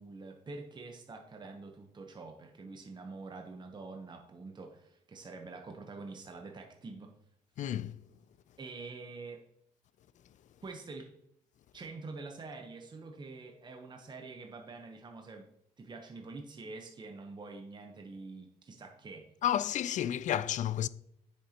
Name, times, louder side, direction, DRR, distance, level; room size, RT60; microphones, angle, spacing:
voice 1, 0.0-7.1 8.6-9.4 10.6-11.1 11.7-15.5 15.8-19.3, right 3 dB, 30° right, 0.9 m, -46 dB
voice 2, 7.6-8.0 19.4-20.9, left 11 dB, 60° left, 0.4 m, -31 dB
8.0 x 6.7 x 2.9 m
cardioid pair, 90°, 15 cm